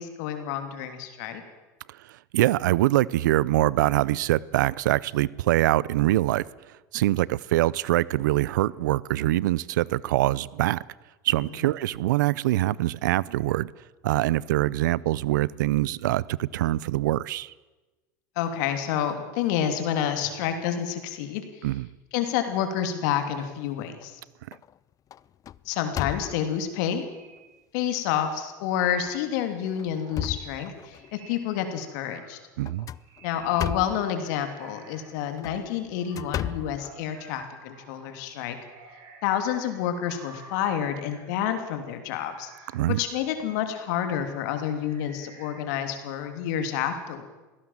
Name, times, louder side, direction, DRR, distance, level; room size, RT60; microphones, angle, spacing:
voice 1, 0.0-1.4 18.4-21.7 22.1-24.2 25.6-27.0 27.7-32.4 33.2-38.6 39.2-42.5 43.0-47.2, left 9 dB, 75° left, 3.1 m, -29 dB
voice 2, 1.9-10.8 11.2-13.7 14.0-17.5 21.6-21.9 32.6-32.9 42.7-43.0, right 15 dB, 85° right, 0.6 m, -24 dB
sound 1, 23.5-24.1 24.5-24.8 25.1-26.7 27.4-27.5 27.9-28.0 29.0-29.2 29.7-31.1 32.6-34.1 35.2-37.5, left 11 dB, 35° left, 0.6 m, -35 dB
sound 2, 27.0-27.5 28.2-35.2 35.5-43.9 44.6-46.0, right 3 dB, 65° right, 6.8 m, -53 dB
21.5 x 17.0 x 7.4 m
supercardioid pair, 100°, 10 cm